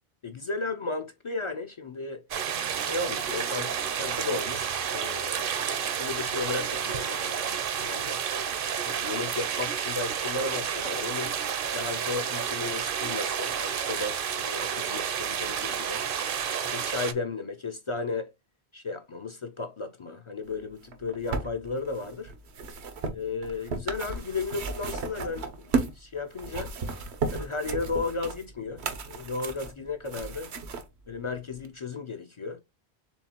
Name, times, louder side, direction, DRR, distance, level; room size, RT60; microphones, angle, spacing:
voice 1, 0.2-2.2 2.8-8.2 8.8-11.4 11.7-16.0 16.6-18.3 18.7-22.3 23.1-26.7 27.3-30.5 31.1-32.6, left 3 dB, 50° left, 0.3 m, -34 dB
sound 1, 2.3-17.1, right 8 dB, 60° right, 0.7 m, -30 dB
sound 2, 20.8-26.0 26.3-30.8 31.6-31.7, right 4 dB, 90° right, 1.1 m, -34 dB
4.4 x 3.6 x 2.8 m
omnidirectional pair, 1.1 m